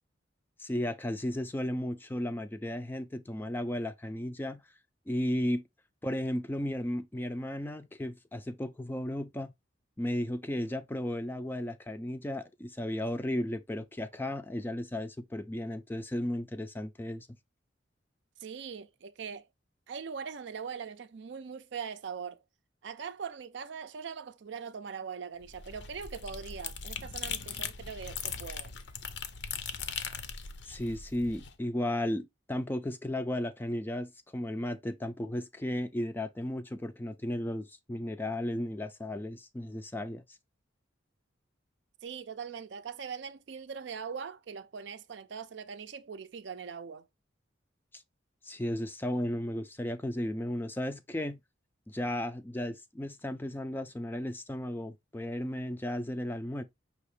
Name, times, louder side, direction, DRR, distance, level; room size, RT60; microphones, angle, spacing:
voice 1, 0.6-4.6 5.1-5.6 6.0-9.5 10.0-17.3 30.6-40.2 47.9-48.0 48.4-51.4 51.9-56.6, left 1 dB, 10° left, 0.3 m, -34 dB
voice 2, 18.4-19.5 19.9-22.4 22.8-28.7 42.0-47.0, right 6 dB, 65° right, 0.4 m, -41 dB
sound 1, 25.4-31.5, left 6 dB, 65° left, 0.6 m, -39 dB
5.5 x 2.8 x 3.2 m
head